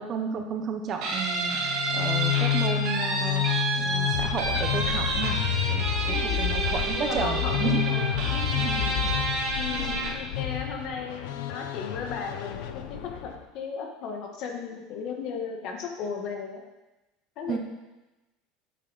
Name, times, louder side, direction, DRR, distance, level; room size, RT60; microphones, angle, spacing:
voice 1, 0.0-5.4 5.7-7.8 8.5-8.7 9.0-9.1 9.8-9.9 17.5-17.6, right 6 dB, 30° right, 4 dB, 0.9 m, -32 dB
Guitar, 1.0-10.3, right 3 dB, 50° right, 2.9 m, -29 dB
sound 1, 1.6-13.4, left 12 dB, 80° left, 0.9 m, -29 dB
voice 2, 6.1-6.5 6.9-8.5 8.8-9.1 9.6-16.6 17.4-17.6, left 5 dB, 45° left, 3 dB, 1.5 m, -36 dB
11.0 x 8.4 x 4.1 m, 1.0 s
cardioid pair, 170°, 0 cm